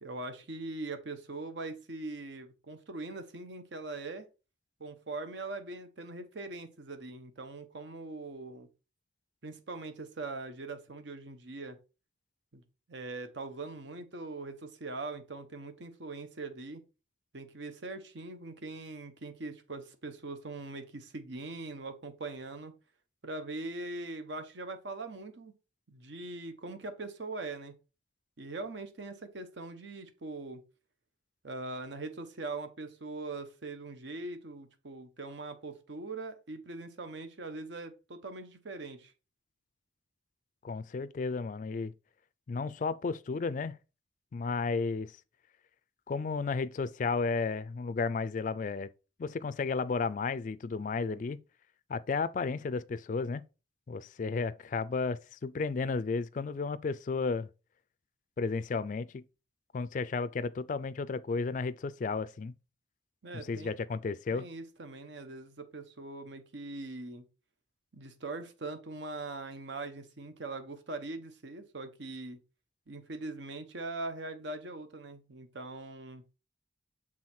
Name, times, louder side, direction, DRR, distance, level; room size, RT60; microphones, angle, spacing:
voice 1, 0.0-4.3 4.8-8.7 9.4-11.8 12.5-12.6 12.9-16.8 17.3-22.7 23.2-25.5 25.9-27.7 28.4-30.6 31.4-39.1 63.2-63.7 64.3-67.2 67.9-72.4 72.9-76.2, right 3 dB, 70° right, 0.9 m, -41 dB
voice 2, 40.6-41.9 42.5-43.8 44.3-45.1 46.1-48.9 49.2-51.4 51.9-53.4 53.9-57.5 58.4-59.2 59.7-62.5 63.3-64.5, left 4 dB, 40° left, 0.3 m, -33 dB
6.3 x 3.7 x 4.3 m
head